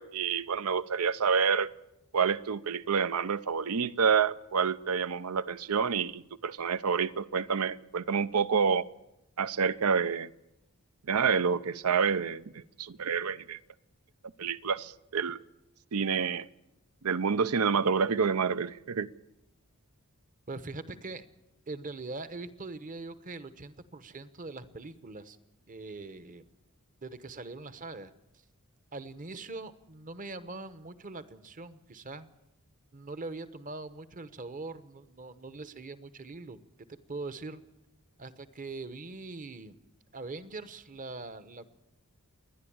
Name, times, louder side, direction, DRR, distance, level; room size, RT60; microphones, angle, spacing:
voice 1, 0.0-1.7 2.1-8.9 9.4-10.3 11.1-13.6 14.4-15.4 15.9-16.5 17.0-19.1, right 6 dB, 75° right, 0.6 m, -28 dB
voice 2, 20.5-21.3 21.7-25.4 25.7-26.4 27.0-28.1 28.9-32.3 32.9-36.6 36.9-37.6 38.2-39.8 40.1-41.7, right 3 dB, 35° right, 1.0 m, -42 dB
28.5 x 11.0 x 8.8 m
head